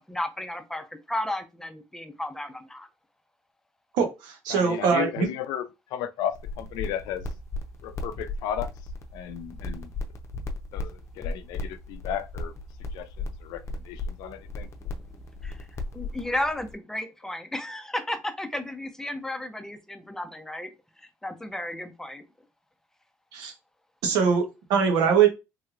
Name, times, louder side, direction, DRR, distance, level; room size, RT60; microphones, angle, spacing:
voice 1, 0.0-2.9 15.4-15.6 15.9-20.7 21.0-22.2, left 1 dB, 5° left, 0.6 m, -33 dB
voice 2, 3.9-5.3 23.3-23.5 24.0-25.3, right 6 dB, 90° right, 1.0 m, -22 dB
voice 3, 4.5-7.3 7.8-8.7 9.1-9.9 10.7-12.5 12.9-14.7, left 10 dB, 85° left, 0.4 m, -34 dB
sound 1, 6.3-16.7, left 2 dB, 45° left, 0.7 m, -36 dB
3.3 x 3.0 x 2.4 m
cardioid pair, 90°, 7 cm